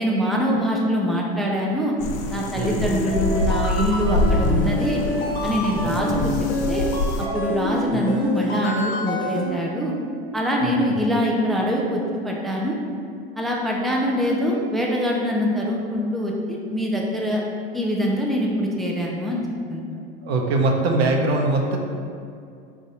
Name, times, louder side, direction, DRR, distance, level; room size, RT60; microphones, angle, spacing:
voice 1, 0.0-2.0 2.3-5.0 5.4-6.9 7.3-9.9 10.3-12.8 13.4-17.4 17.7-19.4 19.7-19.8, equal, ahead, -2 dB, 0.4 m, -24 dB
sound 1, 2.0-7.3, left 2 dB, 65° left, 0.5 m, -26 dB
voice 2, 2.5-2.9 5.8-5.9 10.6-10.7 20.2-21.8, right 2 dB, 80° right, 2 dB, 0.7 m, -22 dB
sound 2, 2.6-9.5, left 2 dB, 40° left, 0.9 m, -27 dB
4.0 x 2.5 x 4.0 m, 2.4 s
hypercardioid pair, 95°, 30 cm